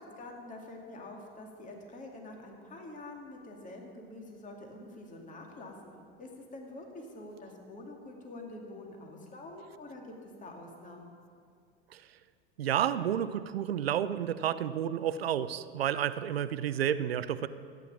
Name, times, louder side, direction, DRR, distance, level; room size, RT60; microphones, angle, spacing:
voice 1, 0.0-11.1, left 2 dB, 25° left, 1 dB, 2.3 m, -46 dB
voice 2, 12.6-17.5, right 10 dB, 85° right, 14 dB, 0.6 m, -30 dB
14.5 x 9.1 x 7.2 m, 2.2 s
hypercardioid pair, 90°, 29 cm